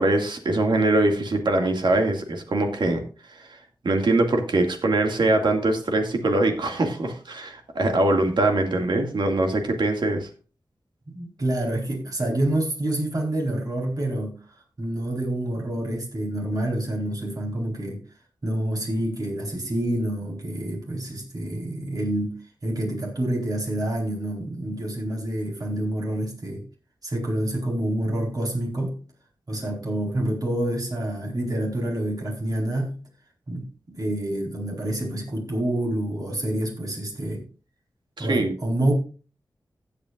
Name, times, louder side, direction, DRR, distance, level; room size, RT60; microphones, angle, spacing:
voice 1, 0.0-3.0 3.3-3.6 3.8-10.3 38.2-38.5, right 2 dB, 75° right, 2.2 m, -22 dB
voice 2, 11.1-14.3 14.8-18.0 18.4-22.4 22.6-26.6 27.0-29.0 29.5-33.0 33.5-37.4 38.2-38.9, right 1 dB, 50° right, 4.5 m, -27 dB
16.0 x 8.8 x 2.5 m
wide cardioid pair, 70°, 8 cm